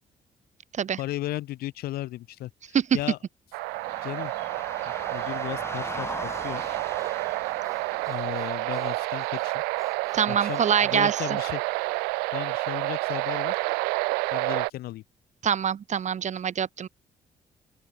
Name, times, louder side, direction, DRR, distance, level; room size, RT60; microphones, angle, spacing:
voice 1, 1.0-2.5 2.9-3.2 4.0-4.3 4.8-6.6 8.1-9.6 10.3-11.6 12.3-13.6 14.3-15.0, left 15 dB, 75° left, 1.6 m, -35 dB
sound 1, 3.5-14.7, right 28 dB, 85° right, 0.6 m, -29 dB
sound 2, 3.7-8.9, left 2 dB, 15° left, 7.1 m, -40 dB
Harmonica, 6.3-11.3, right 2 dB, 20° right, 4.5 m, -49 dB
voice 2, 10.1-11.4 15.4-16.9, right 8 dB, 50° right, 0.9 m, -25 dB
open air
hypercardioid pair, 50°, 16 cm